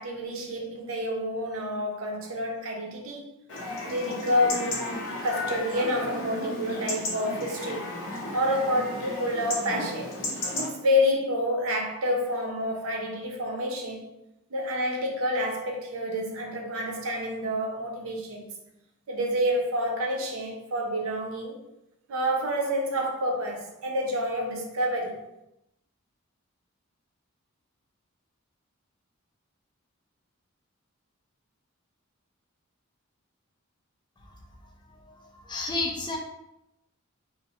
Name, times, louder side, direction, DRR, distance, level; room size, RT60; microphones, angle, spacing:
voice 1, 0.0-3.4 3.9-7.9 8.3-10.1 10.6-14.0 14.5-18.6 19.1-21.6 22.1-25.2, equal, 80° right, 0.5 m, -28 dB
Chatter / Livestock farm animals working animals / Chirp tweet, 3.5-10.7, left 2 dB, 60° left, 0.7 m, -34 dB
voice 2, 35.0-36.2, left 2 dB, 20° left, 0.3 m, -31 dB
2.5 x 2.0 x 2.7 m
head